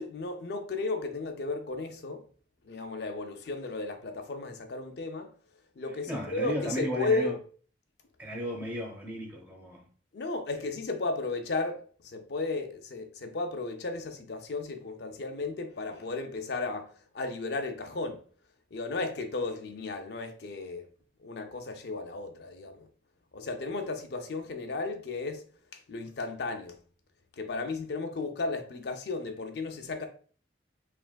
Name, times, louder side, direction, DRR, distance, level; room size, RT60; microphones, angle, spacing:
voice 1, 0.0-2.3 2.6-5.3 5.8-7.3 10.1-18.2 18.7-20.9 21.2-22.9 23.3-25.5 25.7-26.8 27.3-30.1, left 3 dB, 65° left, 0.5 m, -34 dB
voice 2, 6.1-7.3 8.2-9.9, equal, 10° right, 0.9 m, -34 dB
4.8 x 3.2 x 2.2 m
head